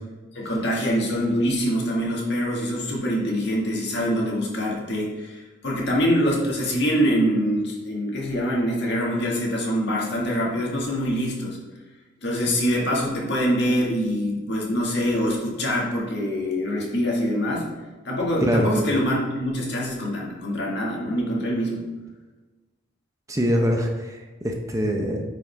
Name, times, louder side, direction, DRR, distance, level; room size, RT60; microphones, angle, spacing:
voice 1, 0.4-11.6 12.2-17.7 18.0-21.8, equal, 60° left, -3 dB, 1.8 m, -24 dB
voice 2, 23.3-25.2, equal, 15° right, 2 dB, 0.6 m, -23 dB
9.0 x 4.9 x 3.4 m, 1.3 s
head